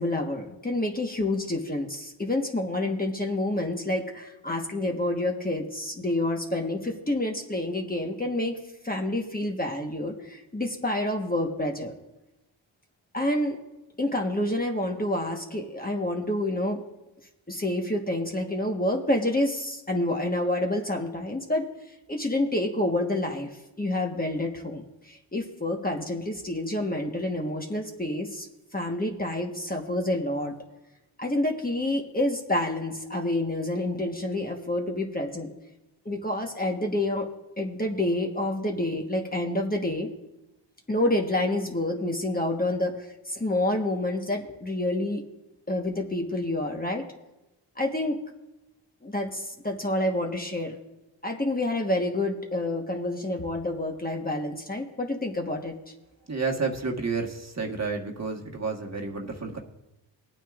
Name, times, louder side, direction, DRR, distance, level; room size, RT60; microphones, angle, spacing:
voice 1, 0.0-11.9 13.1-13.6 14.0-16.8 17.5-21.7 22.1-23.5 23.8-28.5 28.7-30.5 31.2-35.5 36.0-37.3 37.6-40.1 40.9-45.2 45.7-47.1 47.8-48.2 49.0-50.8 51.2-55.7, left 1 dB, 20° left, 1 dB, 1.3 m, -28 dB
voice 2, 56.3-59.6, right 4 dB, 35° right, 0 dB, 1.5 m, -30 dB
20.0 x 9.0 x 2.5 m, 0.96 s
cardioid pair, 55°, 46 cm